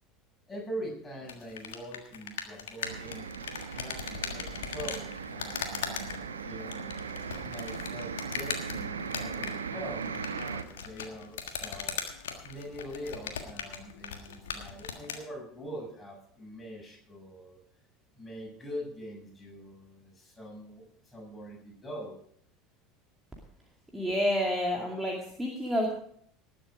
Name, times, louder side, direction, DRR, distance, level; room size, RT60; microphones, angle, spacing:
voice 1, 0.5-3.3 3.7-6.8 7.3-12.0 12.4-17.6 18.1-22.2, equal, 15° left, -2 dB, 7.2 m, -43 dB
sound 1, 1.2-15.2, left 7 dB, 65° left, 1.5 m, -39 dB
sound 2, 2.8-10.6, right 5 dB, 75° right, 0.9 m, -38 dB
voice 2, 23.9-25.9, equal, 10° right, -1 dB, 2.4 m, -29 dB
19.0 x 7.5 x 5.1 m, 0.64 s
figure-of-eight pair, 70°, 0 cm